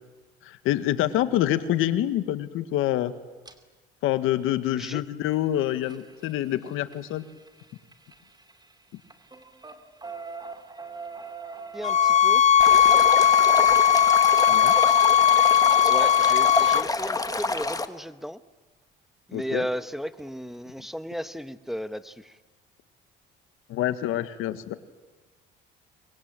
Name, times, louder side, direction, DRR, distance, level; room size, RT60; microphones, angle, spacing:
voice 1, 0.4-3.1 4.0-7.2 14.5-14.7 19.3-19.6 23.7-24.7, left 13 dB, 80° left, 11 dB, 1.6 m, -26 dB
Content warning, 3.4-3.5 5.2-8.7 9.0-17.7 19.4-19.5 19.8-19.9 20.2-20.3, right 4 dB, 20° right, 2.6 m, -41 dB
voice 2, 11.7-12.5 15.9-18.4 19.3-22.4, equal, ahead, 11 dB, 1.1 m, -34 dB
sound 1, 11.8-16.9, left 9 dB, 35° left, 0.7 m, -18 dB
Stream, 12.6-17.9, left 3 dB, 15° left, 1.5 m, -29 dB
25.0 x 21.5 x 9.0 m, 1.2 s
supercardioid pair, 85°, 21 cm